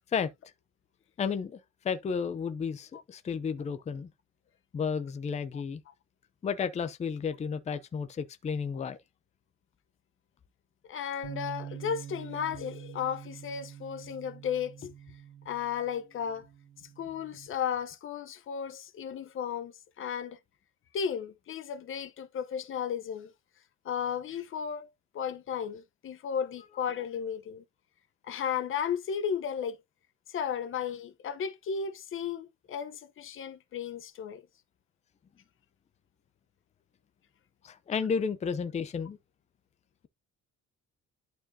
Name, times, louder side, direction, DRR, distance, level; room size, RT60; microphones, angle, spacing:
voice 1, 1.2-4.1 4.7-5.8 6.4-9.0 37.6-39.2, left 6 dB, 25° left, 0.6 m, -32 dB
voice 2, 10.8-14.9 15.4-16.5 16.8-20.4 20.9-23.3 23.8-24.9 25.1-27.6 28.2-29.8 30.3-34.4, left 7 dB, 45° left, 0.9 m, -34 dB
Bass guitar, 11.2-17.5, right 9 dB, 65° right, 3.3 m, -46 dB
11.5 x 4.4 x 2.7 m
cardioid pair, 170°, 29 cm